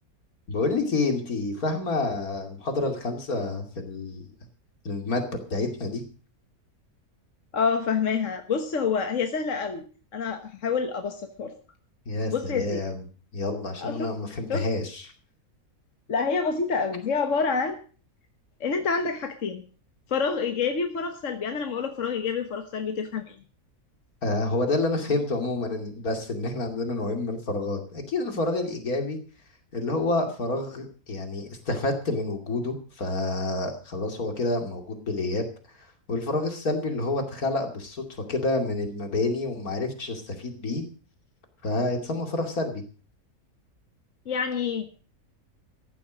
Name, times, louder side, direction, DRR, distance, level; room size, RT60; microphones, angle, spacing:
voice 1, 0.5-4.2 4.8-6.0 12.1-13.0 13.3-15.0 24.2-29.2 29.7-35.4 35.8-40.8 41.6-42.8, left 2 dB, 75° left, 5 dB, 3.1 m, -28 dB
voice 2, 7.5-9.8 10.1-11.6 12.3-12.8 13.8-14.1 14.5-14.6 16.1-17.8 18.6-19.6 20.1-23.4 44.2-44.9, left 5 dB, 55° left, 6 dB, 1.6 m, -27 dB
15.0 x 11.0 x 6.3 m, 0.40 s
omnidirectional pair, 1.6 m